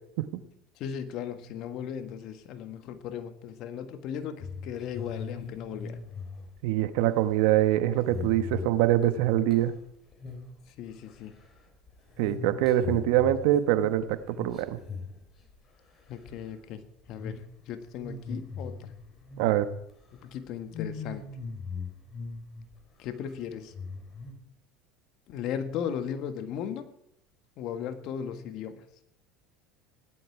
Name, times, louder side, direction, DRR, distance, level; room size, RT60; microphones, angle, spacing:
voice 1, 0.8-6.0 10.8-11.3 12.8-13.1 16.1-18.9 20.2-21.2 23.0-23.7 25.3-26.9 27.6-28.8, left 8 dB, 60° left, 9 dB, 1.6 m, -37 dB
sound 1, 4.4-9.8 10.1-10.6 10.9-15.8 16.1-16.5 17.1-17.4 17.9-19.9 20.2-20.3 20.7-22.7 23.1-23.2 23.7-24.3, left 4 dB, 35° left, 4.0 m, -40 dB
voice 2, 6.6-9.7 12.2-14.8 19.4-19.7, right 13 dB, 75° right, 11 dB, 1.2 m, -24 dB
17.0 x 11.5 x 4.8 m, 0.78 s
supercardioid pair, 100°, 0 cm